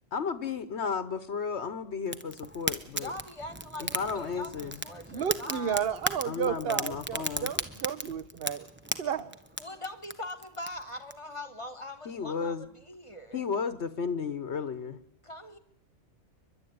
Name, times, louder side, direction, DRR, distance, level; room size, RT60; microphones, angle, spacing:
voice 1, 0.1-3.1 3.8-4.8 6.2-7.5 12.0-12.7 13.3-15.0, left 5 dB, 70° left, 12 dB, 1.3 m, -33 dB
Fire, 2.1-11.1, right 1 dB, 10° right, 0.9 m, -37 dB
voice 2, 2.9-5.8 9.6-13.4 15.2-15.6, left 1 dB, 25° left, 11 dB, 1.6 m, -42 dB
voice 3, 5.1-8.6 9.0-9.3, right 8 dB, 55° right, 15 dB, 1.2 m, -32 dB
30.0 x 11.5 x 9.5 m, 0.78 s
omnidirectional pair, 1.2 m